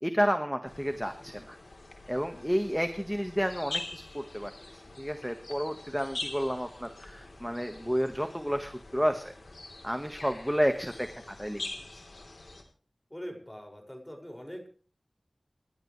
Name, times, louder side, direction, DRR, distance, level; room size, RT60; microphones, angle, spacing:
voice 1, 0.0-1.6 2.1-9.3 9.8-12.0, equal, ahead, 6 dB, 1.5 m, -31 dB
sound 1, 0.6-12.6, left 2 dB, 75° left, 3.6 m, -44 dB
voice 2, 13.1-14.7, equal, 15° left, 2 dB, 5.9 m, -42 dB
28.5 x 12.0 x 3.3 m, 0.41 s
wide cardioid pair, 55°, 0 cm